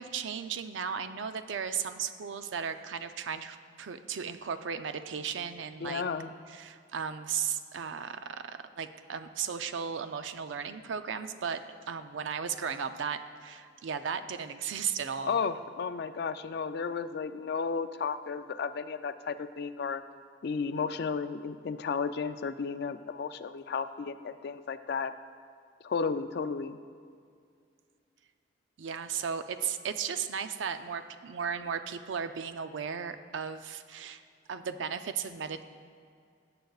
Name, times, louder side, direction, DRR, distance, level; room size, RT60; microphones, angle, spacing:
voice 1, 0.0-6.0 6.5-15.4 28.8-34.2 34.5-35.6, right 7 dB, 80° right, 10 dB, 0.5 m, -35 dB
voice 2, 5.8-6.3 15.3-20.0 20.4-25.1 25.8-26.8, left 5 dB, 60° left, 12 dB, 0.4 m, -33 dB
17.0 x 7.7 x 2.4 m, 2.3 s
head